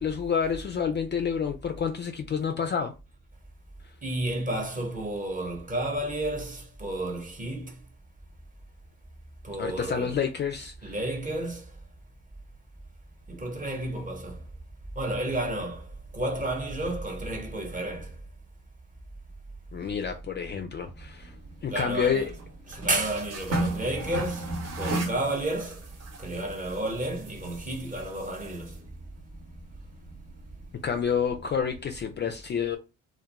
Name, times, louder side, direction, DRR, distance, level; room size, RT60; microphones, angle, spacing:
voice 1, 0.0-2.9 9.6-10.9 19.7-21.3 21.6-22.3 30.8-32.8, left 7 dB, 30° left, 0.4 m, -29 dB
voice 2, 4.0-7.8 9.4-10.2 10.8-11.7 13.3-14.4 14.9-18.2 21.6-22.3 22.7-25.9 26.2-28.8, right 1 dB, 25° right, 1.0 m, -31 dB
sound 1, 20.8-32.0, right 2 dB, 45° right, 0.9 m, -37 dB
2.2 x 2.2 x 2.9 m
hypercardioid pair, 50°, 34 cm